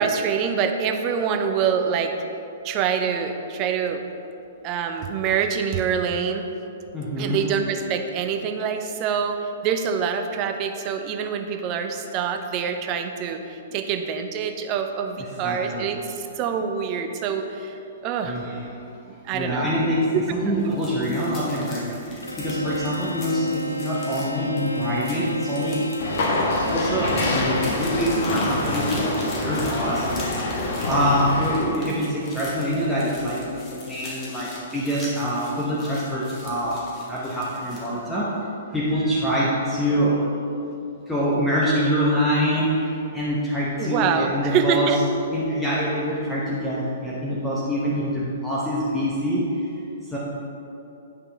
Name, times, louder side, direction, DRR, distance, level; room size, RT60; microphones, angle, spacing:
voice 1, 0.0-2.1 2.6-4.0 4.6-6.5 7.2-17.8 18.0-18.4 19.2-19.7 20.7-20.8 43.8-45.0, right 7 dB, 30° right, 6 dB, 0.6 m, -25 dB
voice 2, 6.9-7.4 15.2-15.9 18.2-18.6 19.3-25.8 26.2-30.5 30.9-38.3 38.7-40.2 41.1-44.9 45.3-49.7 50.1-50.2, equal, 5° left, -7 dB, 1.0 m, -25 dB
sound 1, 20.6-38.0, left 2 dB, 25° left, 1.7 m, -41 dB
Bowed string instrument, 22.2-27.9, left 1 dB, 90° left, 0.4 m, -32 dB
sound 2, 26.0-31.6, left 2 dB, 50° left, 1.2 m, -26 dB
9.3 x 5.7 x 3.4 m, 2.8 s
figure-of-eight pair, 115°, 0 cm